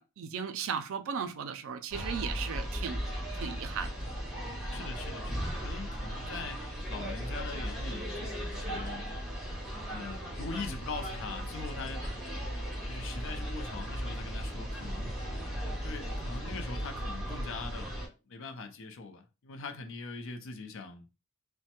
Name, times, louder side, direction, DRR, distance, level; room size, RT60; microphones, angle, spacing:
voice 1, 0.0-3.0 3.3-3.9, right 7 dB, 60° right, 0.4 m, -36 dB
sound 1, 1.9-18.1, equal, 5° right, 1.2 m, -37 dB
voice 2, 4.7-9.1 9.9-12.1 12.9-15.1 15.8-21.1, left 4 dB, 60° left, 0.5 m, -42 dB
3.1 x 2.1 x 2.9 m
head